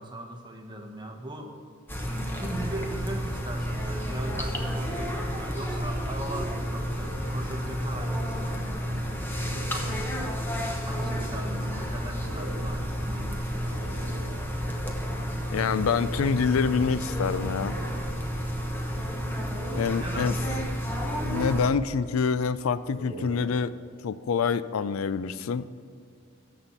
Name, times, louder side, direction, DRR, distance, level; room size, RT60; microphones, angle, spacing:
voice 1, 0.0-1.6 2.4-8.5 9.5-10.3 10.9-13.4 20.0-20.4, right 1 dB, 20° right, 3 dB, 1.0 m, -38 dB
sound 1, 1.9-21.7, equal, 10° left, 0.9 m, -31 dB
sound 2, 4.7-7.5 7.8-8.9 9.3-14.8 15.7-17.0 17.4-18.7 19.1-20.6 21.0-22.3 22.7-24.1, right 1 dB, 65° right, 1.1 m, -45 dB
voice 2, 15.5-17.8 19.8-20.3 21.2-23.7 24.0-25.7, left 6 dB, 85° left, 15 dB, 0.4 m, -26 dB
12.5 x 4.3 x 8.0 m, 2.3 s
head